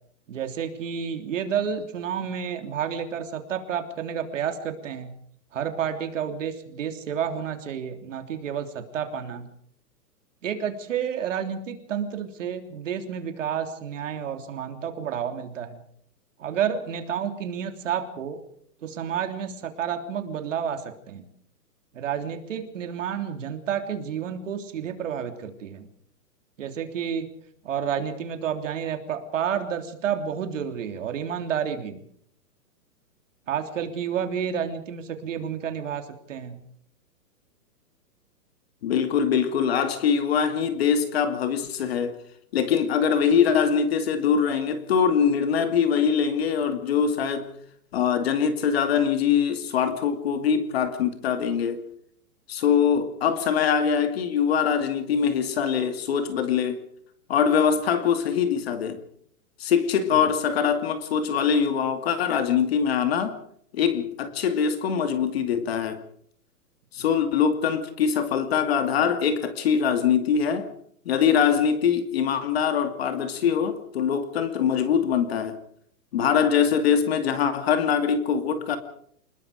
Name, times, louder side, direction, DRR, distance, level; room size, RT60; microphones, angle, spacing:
voice 1, 0.3-5.1 5.5-9.5 10.4-15.8 16.4-18.4 18.8-21.3 21.9-25.9 26.6-27.3 27.6-32.0 33.5-36.6 60.1-60.2, right 8 dB, 50° right, 3.4 m, -30 dB
voice 2, 38.8-42.1 42.5-47.5 47.9-51.8 52.5-56.8 57.3-59.0 59.6-63.4 63.7-66.0 66.9-70.7 71.1-75.6 76.1-78.8, left 7 dB, 40° left, 2.5 m, -23 dB
27.5 x 21.0 x 5.2 m
hypercardioid pair, 170°, 47 cm